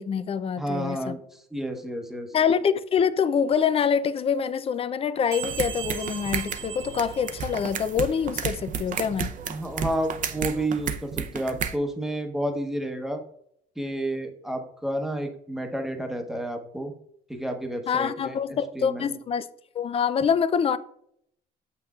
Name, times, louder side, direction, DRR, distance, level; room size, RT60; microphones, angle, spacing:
voice 1, 0.0-1.2 2.3-9.3 17.9-19.5 19.7-20.8, left 7 dB, 35° left, 0.4 m, -25 dB
voice 2, 0.6-2.3 9.5-13.2 13.8-16.9 17.3-19.1, right 1 dB, ahead, 1.0 m, -31 dB
sound 1, 5.3-7.9, right 7 dB, 85° right, 1.8 m, -38 dB
sound 2, 5.4-11.8, right 7 dB, 50° right, 0.7 m, -32 dB
7.7 x 5.8 x 2.4 m
cardioid pair, 110°, 17 cm